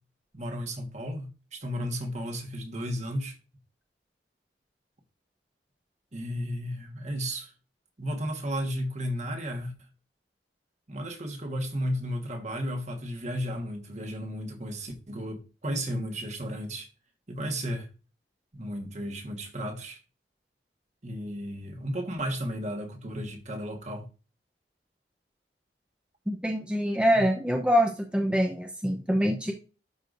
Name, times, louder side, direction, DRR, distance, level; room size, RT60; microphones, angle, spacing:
voice 1, 0.3-3.4 6.1-7.5 8.0-9.7 10.9-16.9 17.3-17.9 18.5-20.0 21.0-24.1 27.1-27.2, equal, 40° right, 1.5 m, -33 dB
voice 2, 26.3-29.5, equal, 5° right, 0.8 m, -25 dB
11.0 x 4.8 x 2.6 m
head